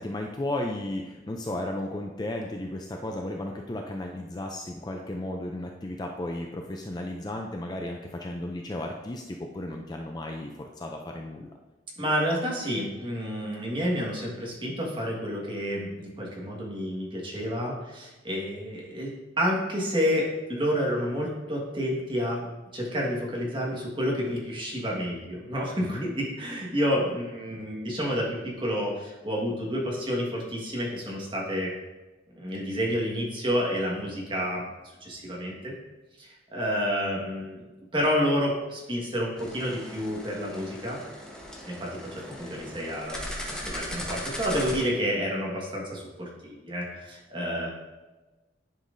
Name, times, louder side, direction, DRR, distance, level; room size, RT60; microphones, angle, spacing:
voice 1, 0.0-11.5 25.9-26.1 42.3-42.4 42.7-42.8, left 1 dB, 20° left, 2 dB, 0.4 m, -34 dB
voice 2, 12.0-19.1 19.4-22.5 22.7-31.7 32.3-34.6 35.0-35.7 36.2-41.0 41.6-47.7, equal, 25° right, -4 dB, 1.5 m, -29 dB
sound 1, 39.4-44.8, equal, 5° left, 0.9 m, -38 dB
10.0 x 5.7 x 2.6 m, 1.2 s
head